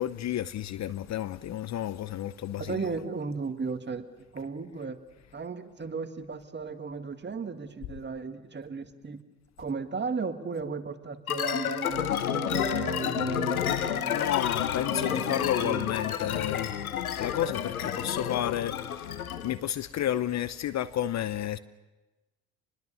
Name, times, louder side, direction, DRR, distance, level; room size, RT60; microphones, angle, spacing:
voice 1, 0.0-2.8 14.1-16.8 17.2-19.1 19.4-21.6, left 11 dB, 40° left, 0.8 m, -31 dB
voice 2, 2.6-4.1 4.3-5.0 5.3-9.2 9.6-14.3 14.9-15.9, right 5 dB, 25° right, 2.1 m, -35 dB
sound 1, 11.3-19.6, left 9 dB, 85° left, 1.2 m, -30 dB
27.0 x 21.0 x 7.1 m
hypercardioid pair, 65°, 42 cm